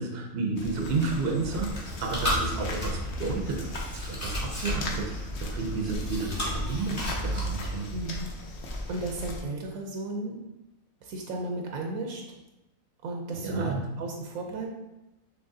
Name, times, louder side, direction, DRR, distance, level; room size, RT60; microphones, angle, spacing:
voice 1, 0.0-3.7 3.9-7.9 13.3-13.8, right 3 dB, 55° right, 2 dB, 0.7 m, -31 dB
sound 1, 0.6-9.4, left 1 dB, 60° left, 0.9 m, -38 dB
Chewing mastication, 1.4-8.0, equal, 25° left, 1.5 m, -33 dB
voice 2, 7.9-8.3 8.9-10.4 11.0-12.2 13.0-14.7, right 2 dB, 80° right, 1 dB, 1.1 m, -34 dB
5.9 x 3.1 x 2.7 m, 0.96 s
omnidirectional pair, 1.5 m